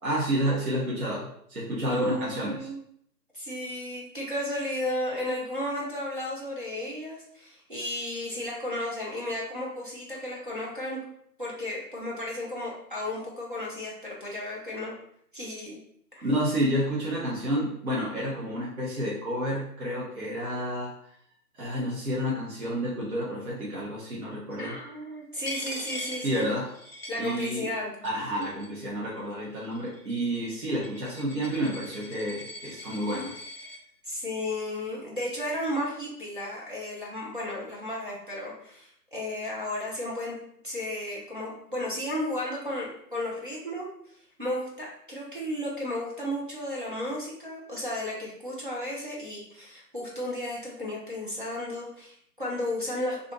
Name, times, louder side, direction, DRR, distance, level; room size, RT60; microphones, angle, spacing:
voice 1, 0.0-2.7 16.2-20.9 21.6-24.8 26.2-26.7 27.2-27.7 28.0-33.4, equal, 55° right, -6 dB, 1.0 m, -30 dB
voice 2, 1.9-2.8 3.3-11.0 11.4-14.9 15.3-15.8 16.1-16.3 24.6-26.5 27.1-27.9 34.0-40.4 40.6-43.9 44.4-53.3, left 1 dB, 30° right, -5 dB, 0.6 m, -33 dB
Coin (dropping), 25.4-27.8 28.0-28.9 29.6-33.8, left 2 dB, 40° left, 0.6 m, -42 dB
2.6 x 2.4 x 3.9 m, 0.68 s
figure-of-eight pair, 160°, 49 cm